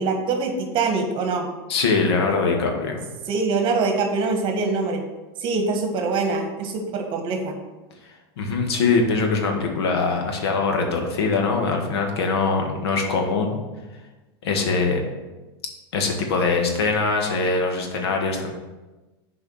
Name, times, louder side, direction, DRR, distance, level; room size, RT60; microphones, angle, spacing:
voice 1, 0.0-1.5 3.2-5.0 5.4-7.6, right 4 dB, 40° right, 4 dB, 1.6 m, -24 dB
voice 2, 1.7-3.0 8.4-13.6 14.4-15.0 15.9-18.5, left 4 dB, 80° left, 2 dB, 1.7 m, -22 dB
7.1 x 4.8 x 6.4 m, 1.2 s
supercardioid pair, 125°, 13 cm